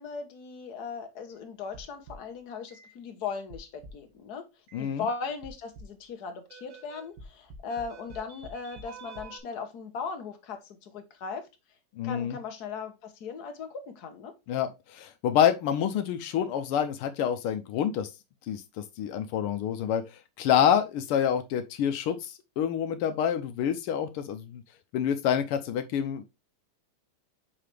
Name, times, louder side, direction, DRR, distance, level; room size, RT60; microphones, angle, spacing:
voice 1, 0.0-4.5 4.8-11.5 12.0-14.3, left 5 dB, 50° left, 1.6 m, -38 dB
sound 1, 1.7-2.3 2.7-2.9 3.5-4.1 4.7-4.9 5.4-6.0 6.5-9.4, right 2 dB, 65° right, 2.4 m, -47 dB
voice 2, 4.7-5.1 12.0-12.4 14.5-18.1 18.5-20.0 20.4-24.6 24.9-26.2, left 9 dB, 85° left, 1.6 m, -27 dB
5.9 x 5.6 x 3.3 m
omnidirectional pair, 2.4 m